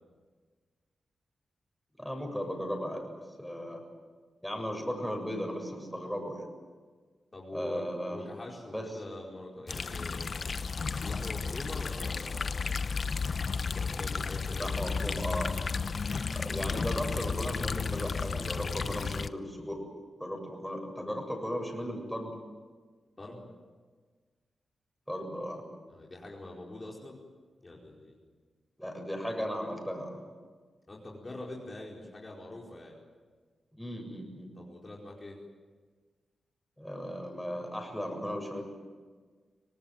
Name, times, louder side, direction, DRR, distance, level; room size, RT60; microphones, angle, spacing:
voice 1, 2.0-3.1 3.4-3.8 4.4-6.5 7.5-8.2 8.7-8.9 14.5-15.5 16.3-19.8 20.2-22.3 25.1-25.6 28.8-30.2 33.7-34.5 36.8-38.6, equal, ahead, 3 dB, 7.4 m, -36 dB
voice 2, 7.3-7.8 8.1-10.6 11.0-12.6 13.7-14.7 23.2-23.5 25.9-27.2 27.6-28.2 30.9-32.9 34.5-35.4, left 2 dB, 30° left, -2 dB, 4.7 m, -44 dB
sound 1, 9.7-19.3, left 5 dB, 55° left, 0.9 m, -33 dB
25.5 x 18.5 x 9.2 m, 1.5 s
cardioid pair, 65°, 0 cm